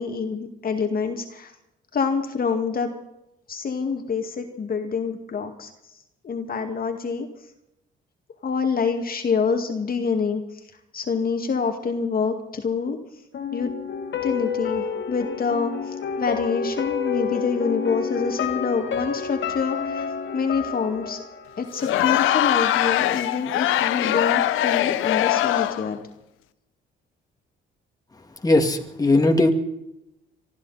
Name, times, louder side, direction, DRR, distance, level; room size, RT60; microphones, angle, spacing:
voice 1, 0.0-1.5 1.9-2.9 3.5-5.7 6.2-7.3 8.4-10.4 10.9-13.0 13.5-13.7 14.2-20.1 20.3-21.2 21.6-26.0, left 5 dB, 45° left, 4 dB, 2.2 m, -26 dB
sound 1, 13.3-22.3 22.6-22.7, left 6 dB, 65° left, 2.5 m, -29 dB
Crowd, 21.8-25.9, left 13 dB, 85° left, 0.8 m, -22 dB
voice 2, 28.4-29.5, left 2 dB, 20° left, 4 dB, 2.4 m, -18 dB
25.0 x 13.5 x 4.3 m, 0.85 s
cardioid pair, 90°, 20 cm